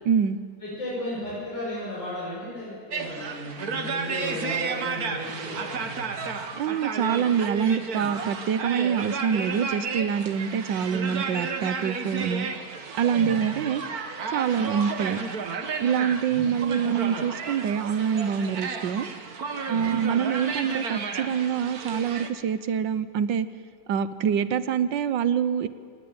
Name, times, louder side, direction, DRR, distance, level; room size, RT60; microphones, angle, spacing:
voice 1, 0.0-0.4 6.6-12.5 12.9-13.8 14.3-15.2 15.8-19.1 19.7-23.5 23.9-25.7, right 8 dB, 75° right, 13 dB, 1.6 m, -25 dB
voice 2, 0.6-6.3 13.1-13.4 16.3-16.6 19.7-19.9, left 1 dB, 70° left, -7 dB, 7.4 m, -35 dB
sound 1, 2.9-22.3, right 5 dB, 55° right, 1.8 m, -32 dB
27.5 x 19.0 x 8.9 m, 2.1 s
omnidirectional pair, 2.1 m